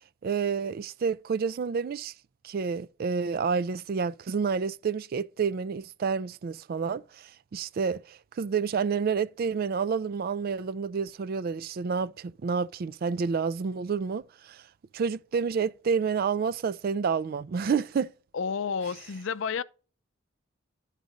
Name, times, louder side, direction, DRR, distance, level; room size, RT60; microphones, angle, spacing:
voice 1, 0.2-2.1 2.4-14.6 14.9-18.1, right 5 dB, 50° right, 0.3 m, -29 dB
voice 2, 18.3-19.6, left 6 dB, 70° left, 0.5 m, -30 dB
11.5 x 4.1 x 5.0 m
head